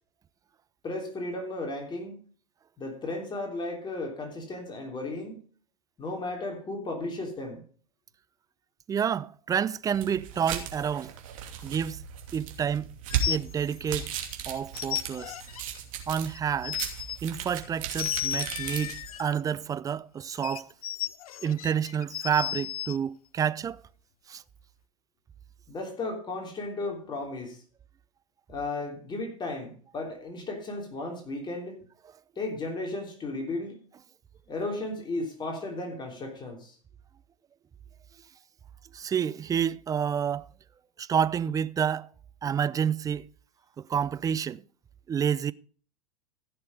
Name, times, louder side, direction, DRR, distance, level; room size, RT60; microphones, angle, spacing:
voice 1, 0.8-2.2 2.8-5.4 6.0-7.6 25.7-27.6 28.5-31.8 32.3-33.8 34.5-36.8, left 2 dB, 25° left, 3.3 m, -35 dB
voice 2, 8.9-11.1 11.6-12.0 12.3-12.9 13.3-14.1 14.5-15.4 16.1-16.8 17.2-20.7 21.4-23.8 24.3-24.4 38.9-40.5 41.0-42.1 42.4-43.3 43.8-44.6 45.1-45.5, right 8 dB, 20° right, 0.5 m, -29 dB
sound 1, 9.9-19.3, right 8 dB, 60° right, 2.7 m, -36 dB
sound 2, 13.1-14.2 14.5-15.6 16.4-17.2 17.9-19.4 20.3-23.0, left 11 dB, 75° left, 0.5 m, -34 dB
15.0 x 6.8 x 5.2 m
hypercardioid pair, 90°, 19 cm